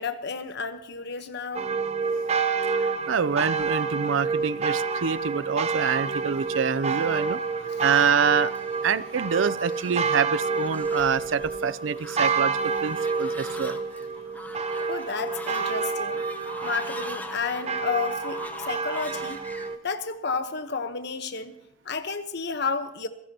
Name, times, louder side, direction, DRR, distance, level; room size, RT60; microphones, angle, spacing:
voice 1, 0.0-1.7 14.8-16.2 16.6-19.4 19.8-21.5 21.8-23.1, left 5 dB, 60° left, 9 dB, 1.1 m, -31 dB
sound 1, 1.5-19.8, right 5 dB, 35° right, 0.8 m, -29 dB
voice 2, 2.8-7.4 7.8-8.5 8.8-13.8, right 6 dB, 75° right, 18 dB, 0.5 m, -26 dB
Fowl, 4.9-19.7, left 1 dB, 10° left, 0.8 m, -44 dB
27.5 x 10.5 x 2.9 m, 0.77 s
head